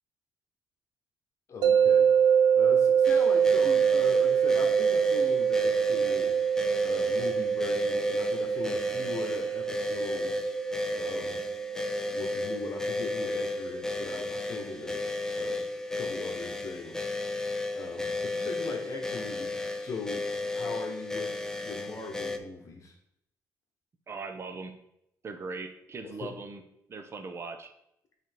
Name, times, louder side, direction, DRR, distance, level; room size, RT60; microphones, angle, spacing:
voice 1, 1.5-2.1 2.5-6.4 6.8-11.4 12.1-15.0 15.3-15.7 15.9-17.2 17.7-21.4 21.6-22.9 26.0-26.3, left 4 dB, 45° left, 2 dB, 1.3 m, -40 dB
sound 1, 1.6-14.7, right 8 dB, 90° right, 0.6 m, -26 dB
sound 2, 3.0-22.4, left 3 dB, 10° left, 0.5 m, -34 dB
voice 2, 24.1-24.8 25.2-26.6 26.9-27.7, right 4 dB, 40° right, 7 dB, 0.8 m, -39 dB
7.5 x 3.4 x 4.5 m, 0.78 s
cardioid pair, 115°, 7 cm